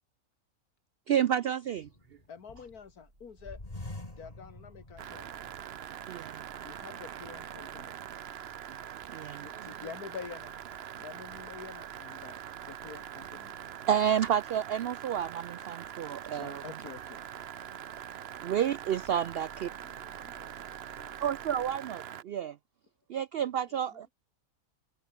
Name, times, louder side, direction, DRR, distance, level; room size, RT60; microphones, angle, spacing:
voice 1, 1.1-1.9 6.1-6.4 8.7-8.8 9.1-9.9 13.9-16.6 18.4-19.7 21.2-22.6 23.1-24.1, right 9 dB, 80° right, 0.5 m, -30 dB
sound 1, 1.8-2.9 3.4-5.8 6.2-6.3 7.0-7.7, left 1 dB, 25° left, 3.5 m, -46 dB
voice 2, 2.3-3.6 4.2-5.3 6.6-7.9 9.4-10.5 11.0-12.4 12.6-13.6 16.3-17.2, left 6 dB, 85° left, 2.3 m, -46 dB
sound 2, 2.6-21.8, right 1 dB, 35° right, 5.7 m, -63 dB
sound 3, 5.0-22.2, right 9 dB, 55° right, 0.8 m, -43 dB
voice 3, 19.7-21.3 23.4-24.1, left 2 dB, 65° left, 6.2 m, -63 dB
omnidirectional pair, 1.6 m